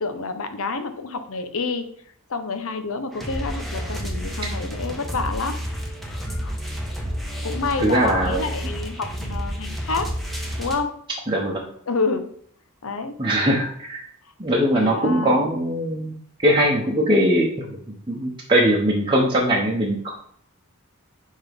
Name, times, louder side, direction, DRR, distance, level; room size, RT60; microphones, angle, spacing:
voice 1, 0.0-1.9 2.3-5.6 6.1-6.6 7.4-10.1 10.6-10.9 11.9-12.3 12.8-13.2 14.5-15.4, left 4 dB, 65° left, 8 dB, 0.8 m, -28 dB
sound 1, 3.1-10.8, equal, ahead, 1.1 m, -30 dB
voice 2, 7.8-8.4 11.3-11.7 13.2-14.0 14.4-16.1 16.4-17.8 18.1-20.1, equal, 20° right, -4 dB, 1.0 m, -21 dB
9.4 x 3.7 x 3.5 m, 0.63 s
head